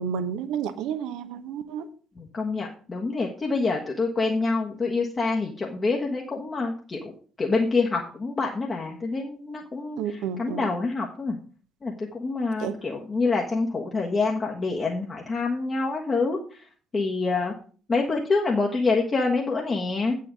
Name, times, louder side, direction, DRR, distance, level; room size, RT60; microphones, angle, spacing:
voice 1, 0.0-1.9 10.0-10.7 12.6-12.8, right 7 dB, 60° right, 11 dB, 0.9 m, -31 dB
voice 2, 2.2-7.1 7.4-11.4 11.8-16.6 16.9-17.5 17.9-20.2, left 3 dB, 30° left, -1 dB, 1.5 m, -26 dB
8.6 x 5.8 x 6.4 m, 0.42 s
figure-of-eight pair, 50°, 0 cm